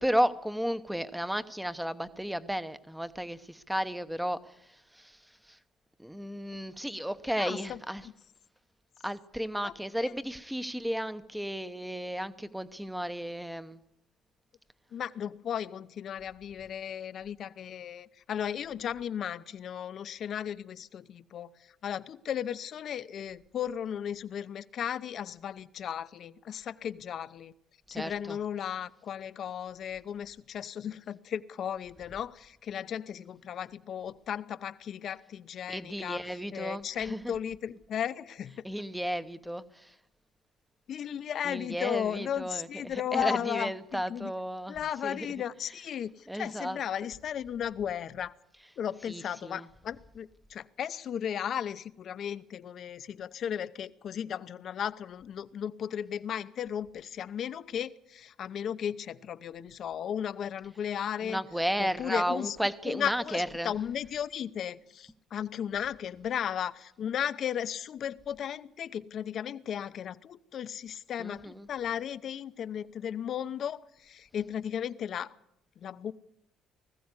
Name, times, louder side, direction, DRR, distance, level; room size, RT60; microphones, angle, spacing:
voice 1, 0.0-5.2 5.5-5.6 6.0-8.0 9.0-13.8 27.9-28.4 35.7-37.3 38.6-39.9 41.4-45.3 46.3-46.8 49.1-49.7 61.2-63.7 71.2-71.7, equal, 5° right, 12 dB, 0.9 m, -33 dB
voice 2, 7.4-7.8 8.0-8.1 9.6-9.7 10.0-10.1 14.9-27.5 27.9-36.2 36.5-38.5 40.9-44.3 44.7-48.3 48.8-61.4 61.8-62.6 62.9-75.4 75.8-76.1, left 9 dB, 45° left, 15 dB, 0.8 m, -35 dB
20.0 x 15.0 x 9.7 m, 0.81 s
cardioid pair, 150°, 0 cm